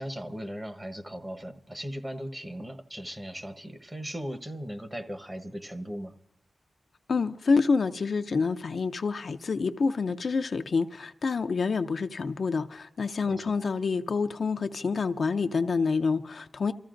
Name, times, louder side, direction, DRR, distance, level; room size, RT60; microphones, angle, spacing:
voice 1, 0.0-6.1 13.2-13.6, equal, 15° right, 1.1 m, -38 dB
voice 2, 7.1-16.7, left 4 dB, 60° left, 0.5 m, -27 dB
28.0 x 14.5 x 2.5 m
wide cardioid pair, 105°, 0 cm